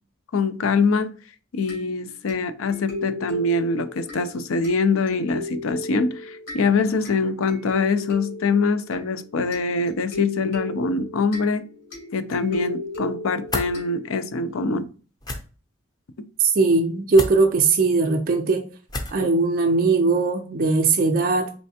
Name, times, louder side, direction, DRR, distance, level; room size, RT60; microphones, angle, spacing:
voice 1, 0.3-1.1 1.5-11.7 12.1-14.9, left 4 dB, 85° left, 0.5 m, -24 dB
sound 1, 1.7-14.4, left 2 dB, 70° left, 2.2 m, -37 dB
sound 2, 13.5-13.7 15.2-15.4 17.1-17.4 18.9-19.2, left 1 dB, 20° left, 0.5 m, -29 dB
voice 2, 16.4-18.6 19.1-21.5, right 3 dB, 45° right, 0.4 m, -19 dB
4.3 x 3.2 x 2.8 m
head